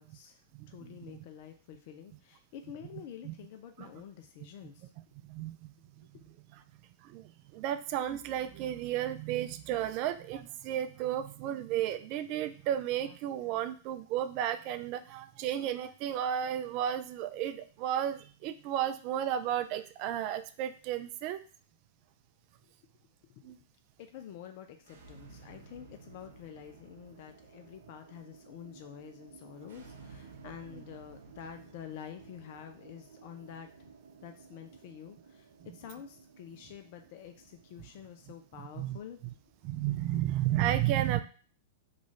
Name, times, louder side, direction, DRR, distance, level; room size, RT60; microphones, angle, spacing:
voice 1, 0.0-0.4 0.7-4.9 6.0-6.2 22.6-22.7 23.2-23.6 24.0-33.9 34.2-35.5 35.7-39.2 39.8-40.2, left 9 dB, 55° left, 6 dB, 0.4 m, -48 dB
voice 2, 0.5-1.2 3.2-3.3 3.8-3.9 5.2-5.7 6.0-6.1 7.0-21.4 23.4-23.6 30.7-30.8 38.8-39.0 39.6-41.2, right 11 dB, 45° right, 11 dB, 0.3 m, -33 dB
sound 1, 24.8-39.7, right 5 dB, 70° right, 0.7 m, -55 dB
3.1 x 2.4 x 3.9 m, 0.40 s
hypercardioid pair, 105°, 0 cm